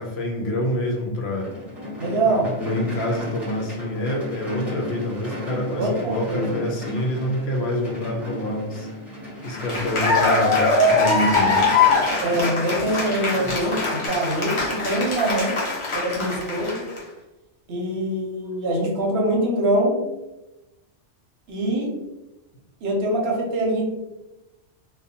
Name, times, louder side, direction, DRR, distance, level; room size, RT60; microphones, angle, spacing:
voice 1, 0.0-1.5 2.2-8.9 9.4-11.6, left 1 dB, 70° left, 0 dB, 0.8 m, -27 dB
sound 1, 1.4-14.1, left 1 dB, ahead, 0.9 m, -34 dB
voice 2, 2.0-2.6 5.8-6.5 12.2-15.6 15.9-16.9 17.7-20.1 21.5-22.0 22.8-23.9, right 1 dB, 65° right, 0 dB, 0.8 m, -24 dB
Cheering / Applause, 9.4-17.0, left 3 dB, 35° left, 0.5 m, -22 dB
2.5 x 2.2 x 2.7 m, 1.0 s
omnidirectional pair, 1.2 m